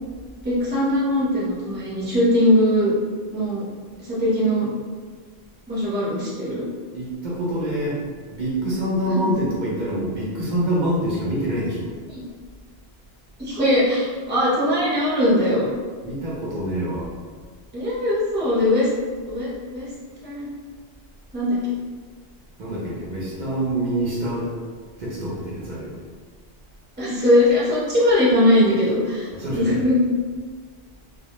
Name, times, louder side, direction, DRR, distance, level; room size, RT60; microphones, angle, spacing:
voice 1, 0.4-2.9 3.3-3.6 4.0-4.7 5.7-6.6 9.1-9.3 13.4-15.7 17.7-18.9 19.3-19.9 20.2-20.5 21.3-21.6 27.0-29.3 29.5-30.0, left 1 dB, 15° right, -8 dB, 0.5 m, -20 dB
voice 2, 6.9-8.0 8.3-11.9 16.0-17.1 22.6-24.5 25.0-26.0 29.3-29.8, right 1 dB, 55° right, -6 dB, 0.6 m, -26 dB
2.1 x 2.1 x 2.8 m, 1.6 s
omnidirectional pair, 1.1 m